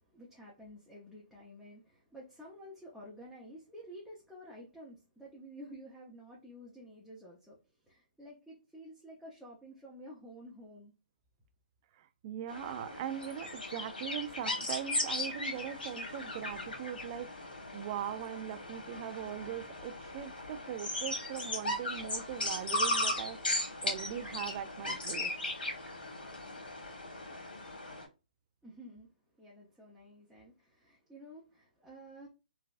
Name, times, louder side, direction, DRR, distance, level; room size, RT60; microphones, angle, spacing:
voice 1, 0.0-10.9 28.6-29.1 29.4-32.3, equal, ahead, 0.7 m, -51 dB
voice 2, 12.0-23.4 23.8-25.3, right 10 dB, 35° right, 0.3 m, -40 dB
sound 1, 12.5-28.1, left 2 dB, 90° left, 1.2 m, -37 dB
3.3 x 2.2 x 2.4 m
hypercardioid pair, 140°, 5 cm